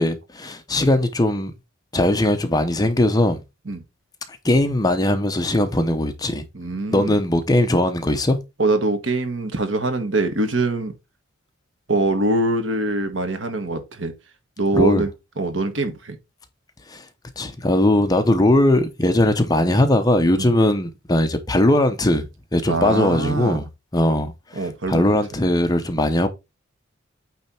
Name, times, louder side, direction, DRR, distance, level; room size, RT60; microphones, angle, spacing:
voice 1, 0.0-1.5 1.9-3.4 4.4-6.4 6.9-8.4 14.7-15.0 16.9-17.0 17.4-24.3 24.9-26.3, left 1 dB, 20° left, 0.8 m, -19 dB
voice 2, 6.5-7.2 8.6-10.9 11.9-14.1 14.6-15.1 15.4-16.1 20.4-20.5 22.7-23.6 24.5-25.1, right 2 dB, 70° right, 1.5 m, -23 dB
8.8 x 3.4 x 4.3 m
head